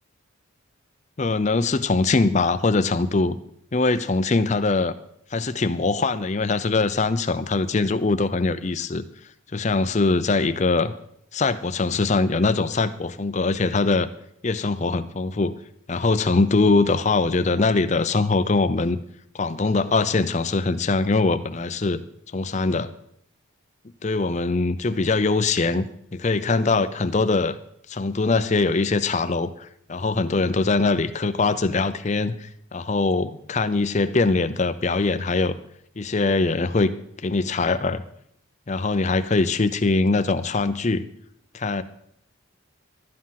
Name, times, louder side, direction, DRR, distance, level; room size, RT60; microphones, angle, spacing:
voice 1, 1.2-3.4 3.7-4.9 5.3-9.0 9.5-10.9 11.3-14.1 14.4-15.5 15.9-19.0 19.3-22.0 22.3-22.9 24.0-27.6 27.9-35.5 36.0-36.9 37.2-38.0 38.7-41.0 41.5-41.8, left 3 dB, 35° left, 12 dB, 0.5 m, -22 dB
12.5 x 9.7 x 5.8 m, 0.71 s
head